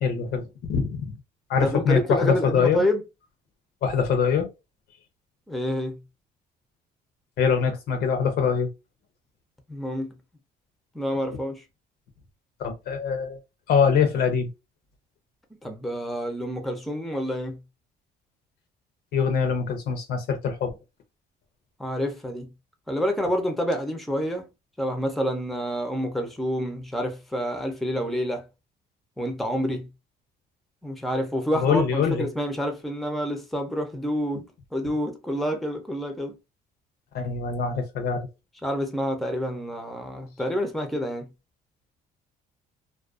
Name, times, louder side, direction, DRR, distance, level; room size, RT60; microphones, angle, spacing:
voice 1, 0.0-1.1 1.5-2.9 3.8-4.5 7.4-8.7 12.6-13.4 13.7-14.5 19.1-20.7 31.5-32.3 37.1-38.3, left 6 dB, 70° left, 0.7 m, -23 dB
voice 2, 1.6-3.0 5.5-6.0 9.7-10.1 10.9-11.6 15.6-17.6 21.8-22.5 22.9-24.5 24.8-28.4 29.2-29.9 30.8-36.4 38.6-41.3, equal, ahead, 0.5 m, -28 dB
2.4 x 2.2 x 2.4 m
cardioid pair, 110°, 17 cm